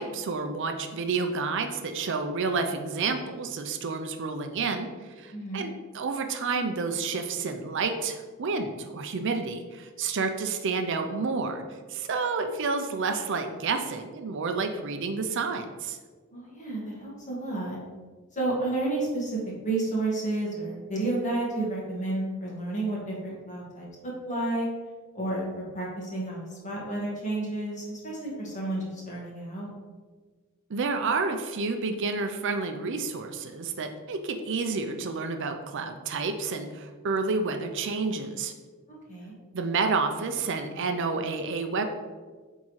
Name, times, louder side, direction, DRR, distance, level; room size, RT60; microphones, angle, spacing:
voice 1, 0.0-11.6 11.9-16.0 30.7-38.5 39.5-41.8, right 4 dB, 60° right, 6 dB, 0.5 m, -30 dB
voice 2, 5.3-5.6 16.3-17.8 18.3-19.4 19.6-24.7 25.1-25.5 25.7-29.7 38.9-39.3, right 2 dB, 35° left, -4 dB, 1.7 m, -31 dB
8.2 x 3.6 x 3.1 m, 1.4 s
head